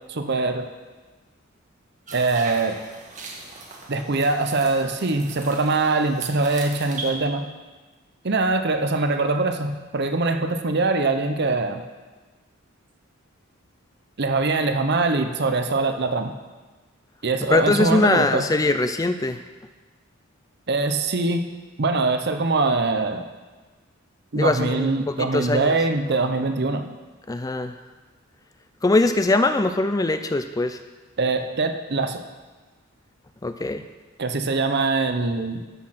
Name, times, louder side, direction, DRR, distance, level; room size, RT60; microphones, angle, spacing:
voice 1, 0.1-0.7 2.1-2.8 3.9-7.5 8.2-11.8 14.2-16.3 17.2-18.4 20.7-21.5 21.8-23.3 24.3-26.9 31.2-32.2 34.2-35.6, right 3 dB, 55° right, 7 dB, 0.8 m, -23 dB
sound 1, 2.1-7.1, right 3 dB, 35° right, 1.6 m, -39 dB
voice 2, 17.5-19.4 24.3-25.7 27.3-27.8 28.8-30.8 33.4-33.8, left 2 dB, 15° left, 9 dB, 0.4 m, -22 dB
12.5 x 6.4 x 5.8 m, 1.3 s
head